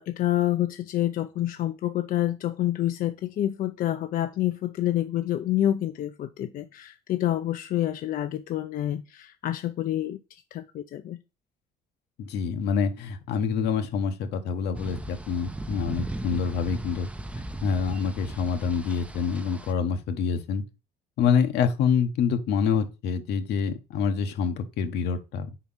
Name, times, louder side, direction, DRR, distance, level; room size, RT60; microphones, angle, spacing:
voice 1, 0.0-11.2, left 13 dB, 55° left, 0.5 m, -28 dB
voice 2, 12.2-17.1 17.6-20.6 21.2-25.5, left 6 dB, 80° left, 1.1 m, -26 dB
sound 1, 14.7-19.7, right 2 dB, 5° right, 0.5 m, -37 dB
4.6 x 4.4 x 5.6 m
cardioid pair, 110°, 17 cm